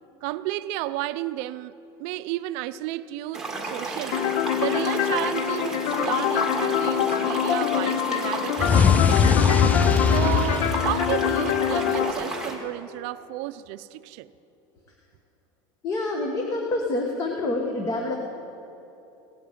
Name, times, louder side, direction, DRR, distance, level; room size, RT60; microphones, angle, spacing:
voice 1, 0.2-1.7 2.0-4.2 4.6-9.5 10.0-14.3, right 16 dB, 60° right, 14 dB, 0.5 m, -32 dB
sound 1, 3.3-12.6, right 2 dB, 5° right, 1.8 m, -32 dB
sound 2, 4.1-12.1, left 10 dB, 55° left, 0.7 m, -25 dB
sound 3, 8.6-11.7, left 6 dB, 15° left, 0.3 m, -21 dB
voice 2, 15.8-18.2, left 2 dB, 30° left, 1 dB, 1.4 m, -27 dB
17.0 x 7.9 x 8.6 m, 2.9 s
supercardioid pair, 145°, 12 cm